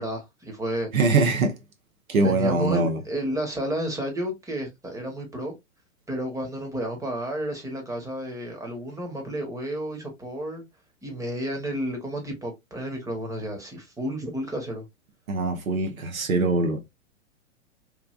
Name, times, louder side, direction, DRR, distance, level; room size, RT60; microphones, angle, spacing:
voice 1, 0.0-0.9 2.2-5.5 6.1-10.6 11.0-14.8, right 1 dB, 10° right, 0.9 m, -31 dB
voice 2, 0.9-1.5 2.1-3.0 15.3-16.8, right 3 dB, 85° right, 0.9 m, -22 dB
3.2 x 2.4 x 2.3 m
hypercardioid pair, 110°, 40 cm